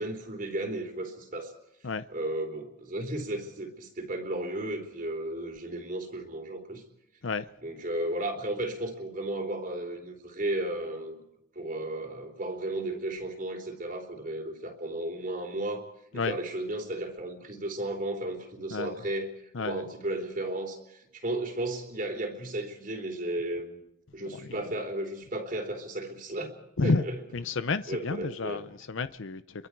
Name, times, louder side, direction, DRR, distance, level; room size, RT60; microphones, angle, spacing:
voice 1, 0.0-1.5 2.1-6.8 7.6-11.2 11.5-15.8 16.1-23.8 24.1-26.6 26.8-27.2 27.9-28.6, right 1 dB, 40° right, 3.3 m, -34 dB
voice 2, 24.2-24.6 26.8-27.0 27.3-29.7, left 4 dB, 70° left, 0.7 m, -31 dB
29.0 x 23.5 x 4.7 m
head